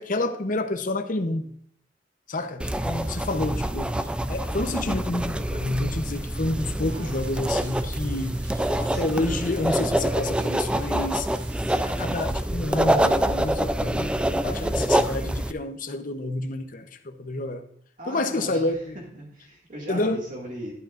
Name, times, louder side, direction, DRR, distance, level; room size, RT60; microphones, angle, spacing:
voice 1, 0.0-1.5 2.3-4.0 4.3-11.3 12.0-17.6 18.1-19.0 19.9-20.2, left 2 dB, 45° left, 0.8 m, -29 dB
sound 1, 2.6-15.5, right 1 dB, 5° right, 0.4 m, -26 dB
sound 2, 6.8-12.4, right 3 dB, 80° right, 1.4 m, -46 dB
voice 2, 18.0-20.7, right 1 dB, 45° right, 2.1 m, -38 dB
12.0 x 11.5 x 2.5 m
head